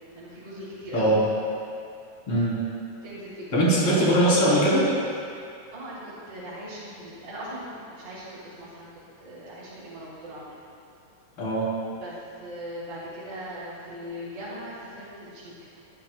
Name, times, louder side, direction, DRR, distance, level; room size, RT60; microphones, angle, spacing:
voice 1, 0.1-1.3 3.0-4.3 5.7-8.9 9.2-10.6 11.9-15.7, equal, 65° right, -11 dB, 4.6 m, -39 dB
voice 2, 2.3-2.6 3.5-4.8 11.4-11.7, right 1 dB, 40° left, -7 dB, 4.2 m, -21 dB
24.5 x 11.5 x 2.3 m, 2.4 s
omnidirectional pair, 3.9 m